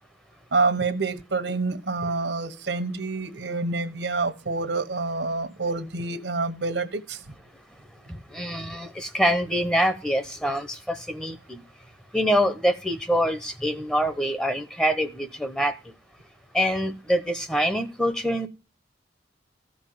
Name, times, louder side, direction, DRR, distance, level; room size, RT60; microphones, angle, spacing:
voice 1, 0.5-7.2 8.7-8.8, right 3 dB, 80° right, 1.3 m, -27 dB
voice 2, 8.3-11.6 12.1-15.7 16.5-18.5, equal, 5° left, 0.9 m, -25 dB
14.0 x 5.4 x 7.8 m
head